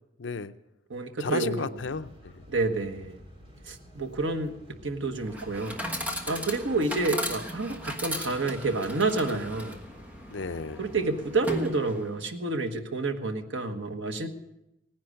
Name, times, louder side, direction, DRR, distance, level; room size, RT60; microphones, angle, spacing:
voice 1, 0.2-0.5 1.2-2.4 10.3-10.8, left 4 dB, 75° left, 11 dB, 0.6 m, -33 dB
voice 2, 0.9-1.7 2.5-3.2 3.7-4.6 4.8-5.8 6.3-9.8 10.8-14.3, right 3 dB, 85° right, 6 dB, 1.3 m, -29 dB
sound 1, 1.8-11.6, equal, 30° right, 2.3 m, -51 dB
Chatter / Coin (dropping), 5.2-12.2, equal, 10° right, 1.2 m, -37 dB
18.0 x 10.5 x 6.4 m, 0.90 s
head